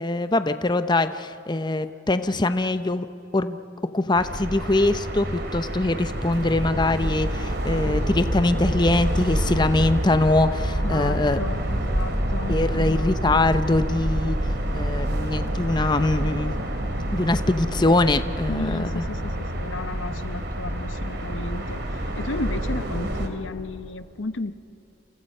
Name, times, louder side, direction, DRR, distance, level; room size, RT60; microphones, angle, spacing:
voice 1, 0.0-3.1 3.3-3.6 3.9-11.4 12.5-14.4 14.7-16.5 17.1-19.0, left 2 dB, 25° left, 10 dB, 0.7 m, -23 dB
sound 1, 4.1-23.3, right 1 dB, 60° right, 2.8 m, -27 dB
voice 2, 10.8-13.4 18.5-24.5, left 2 dB, 85° left, 12 dB, 0.9 m, -33 dB
29.0 x 29.0 x 5.5 m, 2.8 s
head